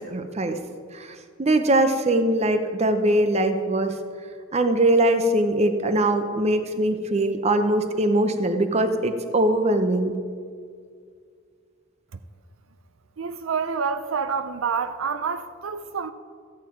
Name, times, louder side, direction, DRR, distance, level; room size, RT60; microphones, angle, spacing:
voice 1, 0.1-0.6 0.9-1.1 1.4-3.9 4.5-10.1, right 1 dB, 30° right, 0.7 m, -21 dB
voice 2, 13.2-16.1, right 6 dB, 75° right, 0.5 m, -27 dB
13.5 x 8.8 x 4.5 m
head